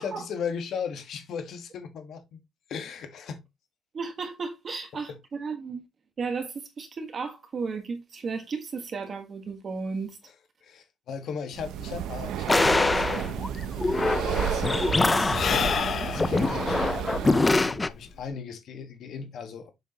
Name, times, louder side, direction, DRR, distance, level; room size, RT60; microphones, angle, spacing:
voice 1, 0.0-2.4 2.7-3.4 5.1-5.2 10.6-13.4 14.2-15.7 16.0-19.7, left 6 dB, 55° left, 1.5 m, -37 dB
voice 2, 3.9-5.8 6.2-10.2, right 4 dB, 30° right, 1.4 m, -34 dB
Breathing, 11.5-17.7, right 10 dB, 85° right, 0.6 m, -32 dB
sound 1, 12.5-17.9, left 3 dB, 15° left, 0.3 m, -24 dB
Sigh / Breathing, 13.3-13.4 13.5-18.3, left 6 dB, 40° left, 0.8 m, -31 dB
7.1 x 6.4 x 2.9 m
cardioid pair, 175°, 0 cm